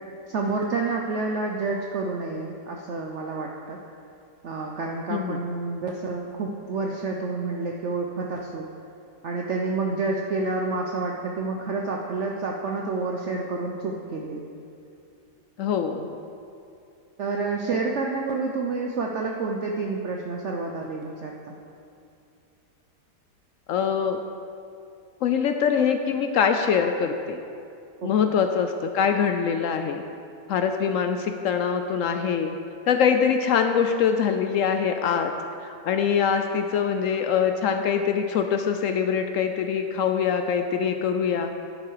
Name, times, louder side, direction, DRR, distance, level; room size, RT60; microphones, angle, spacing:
voice 1, 0.3-3.8 4.4-8.7 9.2-14.4 17.2-21.6 28.0-28.1, right 3 dB, 60° right, 0 dB, 0.8 m, -29 dB
voice 2, 15.6-16.1 23.7-24.2 25.2-27.4 28.0-30.0 30.5-32.6 32.9-35.3 35.6-41.5, left 7 dB, 75° left, 6 dB, 0.7 m, -23 dB
10.5 x 7.7 x 4.8 m, 2.6 s
omnidirectional pair, 1.8 m